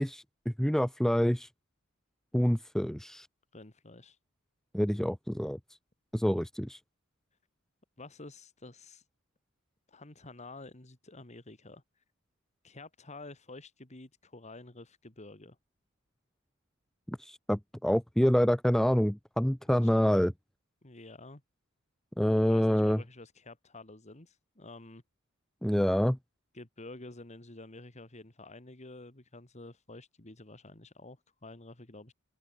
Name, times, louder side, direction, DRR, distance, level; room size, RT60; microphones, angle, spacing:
voice 1, 0.0-1.5 2.3-3.3 4.7-5.6 6.1-6.8 17.1-20.3 22.2-23.0 25.6-26.2, equal, ahead, 0.5 m, -27 dB
voice 2, 3.5-4.2 8.0-9.0 9.9-11.8 12.6-15.6 19.8-20.0 20.8-21.4 22.5-25.0 26.5-32.1, left 2 dB, 35° left, 2.2 m, -49 dB
open air
head